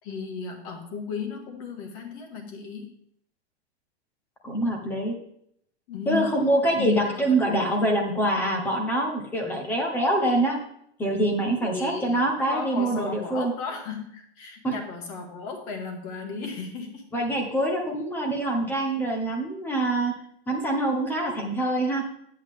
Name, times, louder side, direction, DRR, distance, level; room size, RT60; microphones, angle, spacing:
voice 1, 0.0-2.9 5.9-6.4 6.8-8.0 11.6-12.2 12.5-17.0, left 5 dB, 30° left, 4 dB, 1.7 m, -35 dB
voice 2, 4.4-5.2 6.1-10.6 11.0-13.5 14.6-14.7 17.1-20.1 20.5-22.0, right 1 dB, 5° left, 2 dB, 0.8 m, -25 dB
10.5 x 8.4 x 3.6 m, 0.70 s
supercardioid pair, 175°, 33 cm